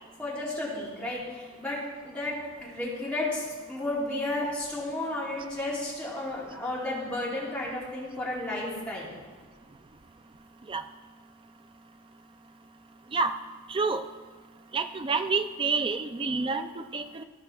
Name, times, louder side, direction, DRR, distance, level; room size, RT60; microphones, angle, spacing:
voice 1, 0.2-9.2, left 1 dB, 5° left, -7 dB, 2.6 m, -33 dB
voice 2, 13.7-14.0 14.7-17.2, right 4 dB, 25° right, 8 dB, 0.4 m, -28 dB
14.5 x 5.1 x 4.5 m, 1.5 s
head